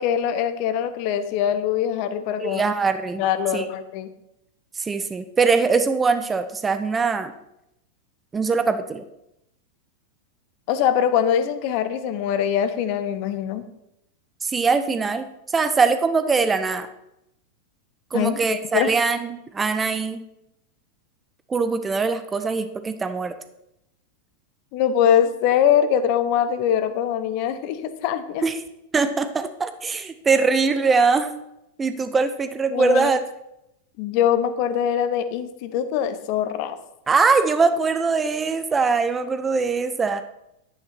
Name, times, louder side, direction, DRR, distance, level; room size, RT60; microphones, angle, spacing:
voice 1, 0.0-2.6 3.2-4.1 10.7-13.6 18.1-18.9 24.7-28.4 32.7-33.1 34.0-36.8, left 9 dB, 45° left, 11 dB, 1.0 m, -23 dB
voice 2, 2.4-3.2 3.5-3.6 4.8-7.3 8.3-9.0 14.4-16.9 18.1-20.2 21.5-23.3 28.4-28.5 28.9-31.3 31.8-33.2 37.1-40.2, right 4 dB, 15° right, 10 dB, 0.7 m, -22 dB
11.5 x 9.1 x 4.4 m, 0.84 s
figure-of-eight pair, 90°, 0 cm